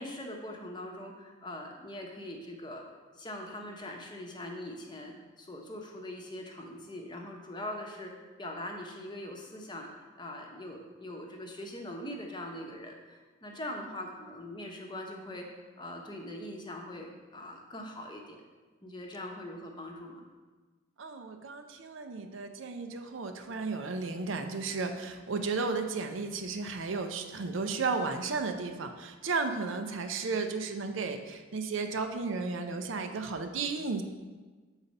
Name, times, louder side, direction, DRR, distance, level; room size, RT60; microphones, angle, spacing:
voice 1, 0.0-2.8 3.1-8.1 8.4-9.9 10.2-15.5 15.8-18.4 18.8-20.2, left 1 dB, 20° left, 1 dB, 0.8 m, -42 dB
voice 2, 21.0-34.0, right 4 dB, 65° right, 6 dB, 0.5 m, -34 dB
7.0 x 4.1 x 5.3 m, 1.3 s
head